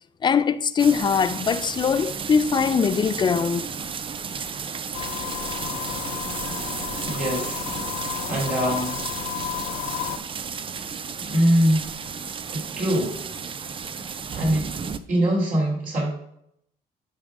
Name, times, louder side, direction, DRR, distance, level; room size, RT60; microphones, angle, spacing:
voice 1, 0.2-3.7, left 6 dB, 25° left, 0.4 m, -21 dB
sound 1, 0.8-15.0, right 6 dB, 30° right, 0.5 m, -33 dB
sound 2, 4.9-10.2, left 14 dB, 85° left, 0.4 m, -32 dB
voice 2, 7.0-7.7 8.3-9.0 11.2-11.9 12.5-13.2 14.3-14.7 15.1-16.1, equal, 55° right, 3.0 m, -23 dB
10.0 x 3.7 x 4.8 m
cardioid pair, 110°, 17 cm